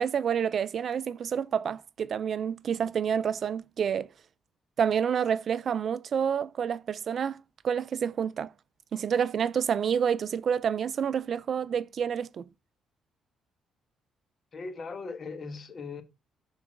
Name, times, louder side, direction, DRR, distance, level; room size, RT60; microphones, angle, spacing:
voice 1, 0.0-4.1 4.8-8.5 8.9-12.4, right 7 dB, 55° right, 0.4 m, -28 dB
voice 2, 14.5-16.0, left 4 dB, 45° left, 1.3 m, -39 dB
6.2 x 4.0 x 4.7 m
cardioid pair, 90°, 0 cm